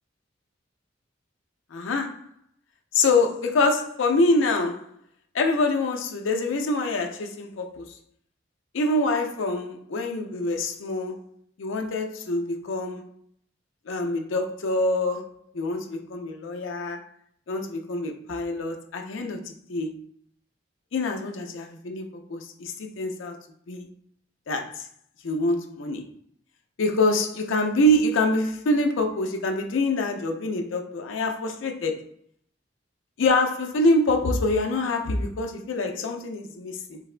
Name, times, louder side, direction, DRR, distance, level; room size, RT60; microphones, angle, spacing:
voice 1, 1.7-2.2 2.9-4.8 5.3-8.0 8.7-11.2 11.6-13.1 13.9-15.3 15.5-17.0 17.5-20.0 20.9-23.3 23.7-23.9 24.5-24.9 25.2-26.1 26.8-32.1 33.2-37.0, left 2 dB, 80° left, 0.5 m, -25 dB
3.9 x 2.1 x 2.4 m
head